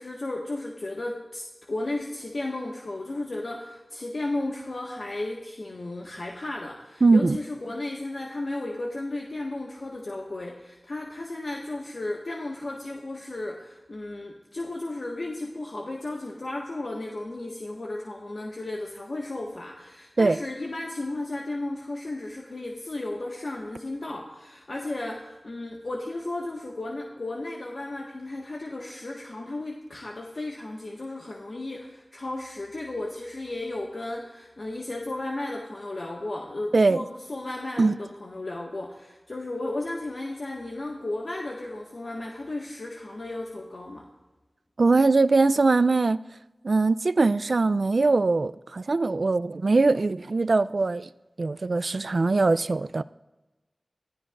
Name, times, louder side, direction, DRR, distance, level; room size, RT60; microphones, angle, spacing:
voice 1, 0.0-44.1, left 2 dB, 65° left, 1.5 m, -34 dB
voice 2, 7.0-7.4 20.2-20.4 36.7-37.0 37.8-38.0 44.8-46.2 46.6-51.1 51.4-53.0, right 3 dB, 70° right, 0.4 m, -21 dB
23.0 x 15.5 x 2.5 m
wide cardioid pair, 50°, 0 cm